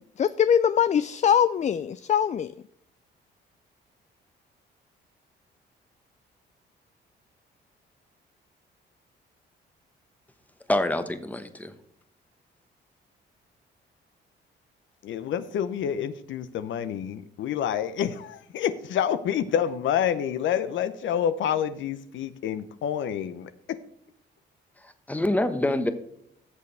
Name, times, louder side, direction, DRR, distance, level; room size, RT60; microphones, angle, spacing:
voice 1, 0.2-2.5, left 8 dB, 35° left, 15 dB, 0.4 m, -22 dB
voice 2, 10.7-11.7 24.8-25.9, left 1 dB, 10° left, 9 dB, 1.1 m, -26 dB
voice 3, 15.0-23.5, left 9 dB, 75° left, 13 dB, 0.7 m, -28 dB
15.5 x 6.9 x 3.4 m, 0.70 s
cardioid pair, 90°, 20 cm